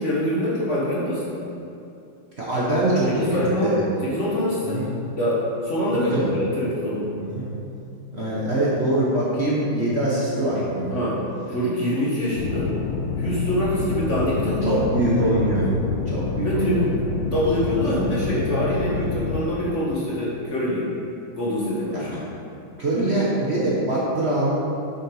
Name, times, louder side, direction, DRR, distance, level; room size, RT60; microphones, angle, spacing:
voice 1, 0.0-1.5 3.1-4.8 5.2-7.2 10.9-11.2 11.5-12.7 13.2-15.1 16.4-17.0 17.2-20.9 21.4-22.1, left 1 dB, 40° left, -7 dB, 1.7 m, -25 dB
voice 2, 2.4-3.1 3.6-3.8 4.6-4.9 5.9-6.3 7.2-7.5 8.1-10.9 14.6-15.7 16.1-16.8 21.9-22.0 22.8-24.5, right 1 dB, 35° right, -7 dB, 1.3 m, -23 dB
sound 1, 12.4-19.4, left 4 dB, 75° left, 1.4 m, -27 dB
7.8 x 6.6 x 4.8 m, 2.7 s
omnidirectional pair, 2.2 m